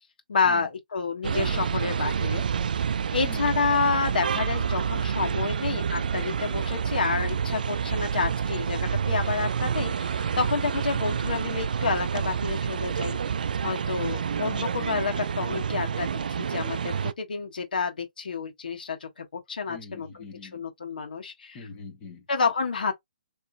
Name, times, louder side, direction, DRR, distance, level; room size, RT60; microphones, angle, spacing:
voice 1, 0.3-2.4 3.1-13.2 13.6-20.1 20.5-21.6 22.3-22.9, left 5 dB, 80° left, 1.4 m, -29 dB
sound 1, 1.2-17.1, right 7 dB, 65° right, 0.4 m, -28 dB
voice 2, 3.2-3.5 19.7-20.6 21.5-22.3, left 3 dB, 15° left, 1.1 m, -43 dB
4.1 x 3.0 x 2.5 m
hypercardioid pair, 170°, 5 cm